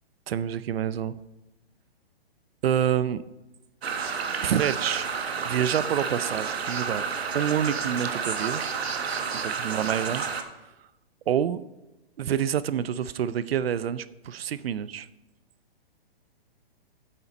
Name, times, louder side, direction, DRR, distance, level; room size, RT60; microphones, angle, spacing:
voice 1, 0.3-1.2 2.6-3.2 4.4-5.1 5.4-7.0 7.3-8.6 9.4-10.2 11.3-11.6 12.2-15.1, right 9 dB, 75° right, 16 dB, 0.6 m, -27 dB
sound 1, 3.8-10.4, right 6 dB, 90° right, 1.3 m, -30 dB
8.7 x 7.0 x 5.2 m, 1.0 s
hypercardioid pair, 160°, 30 cm